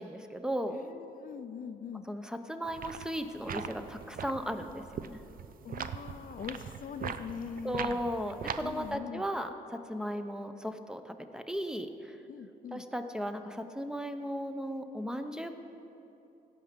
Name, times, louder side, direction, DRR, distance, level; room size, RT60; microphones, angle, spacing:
voice 1, 0.0-0.8 2.1-5.2 7.6-12.2 12.7-15.5, equal, 5° right, 7 dB, 0.8 m, -36 dB
voice 2, 0.7-2.1 5.6-8.0 8.6-9.3 12.3-12.8, left 7 dB, 55° left, 9 dB, 0.5 m, -42 dB
sound 1, 2.7-9.0, right 7 dB, 55° right, 0.5 m, -41 dB
16.5 x 5.7 x 5.2 m, 2.9 s
cardioid pair, 65°, 17 cm